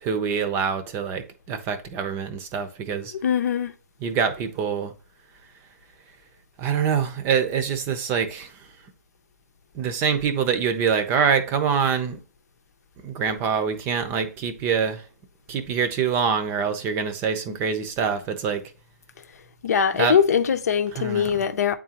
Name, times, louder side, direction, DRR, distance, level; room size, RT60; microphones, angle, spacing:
voice 1, 0.0-3.1 4.0-4.9 6.6-8.7 9.7-12.2 13.0-15.0 15.5-18.6 19.9-20.2 20.9-21.4, right 6 dB, 25° right, 0.7 m, -25 dB
voice 2, 3.2-3.7 19.6-21.7, left 7 dB, 65° left, 0.7 m, -21 dB
8.5 x 3.8 x 2.9 m
hypercardioid pair, 140°, 9 cm